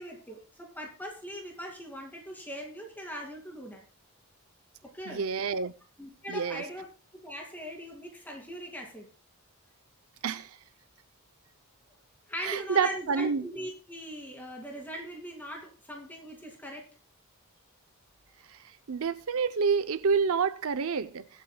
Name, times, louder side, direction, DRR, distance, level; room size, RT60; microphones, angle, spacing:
voice 1, 0.0-3.8 4.8-5.2 6.0-9.1 12.3-16.9, equal, 10° left, 2.3 m, -41 dB
voice 2, 5.1-5.7 6.3-6.6 10.2-10.6 12.4-13.5 18.5-18.6 18.9-21.3, right 5 dB, 70° right, 0.6 m, -28 dB
22.5 x 8.2 x 2.2 m
head